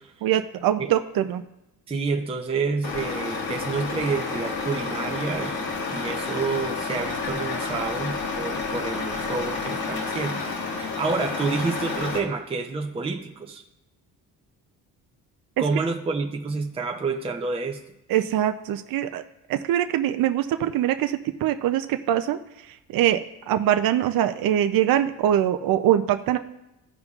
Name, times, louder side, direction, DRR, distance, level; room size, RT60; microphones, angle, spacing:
voice 1, 0.2-1.4 18.1-19.2 19.5-22.4 22.9-26.4, right 11 dB, 65° right, 8 dB, 0.5 m, -23 dB
voice 2, 1.9-10.4 10.8-13.6 15.6-17.8, right 4 dB, 15° right, 2 dB, 0.6 m, -29 dB
Truck, 2.8-12.2, left 4 dB, 75° left, 1.7 m, -30 dB
15.0 x 5.2 x 2.4 m, 0.91 s
cardioid pair, 115°, 37 cm